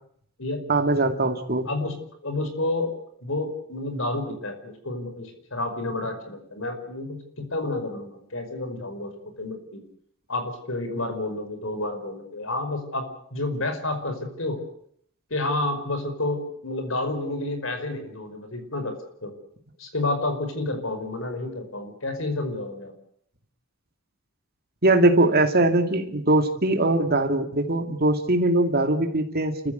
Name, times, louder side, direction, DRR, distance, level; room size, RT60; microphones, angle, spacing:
voice 1, 0.7-1.7 24.8-29.7, right 2 dB, 50° right, 6 dB, 2.6 m, -21 dB
voice 2, 2.2-2.9 3.2-9.1 9.4-9.8 10.3-14.6 15.3-18.9 19.2-19.3 19.8-22.9, left 2 dB, 65° left, 7 dB, 5.3 m, -30 dB
30.0 x 15.0 x 8.1 m, 0.67 s
head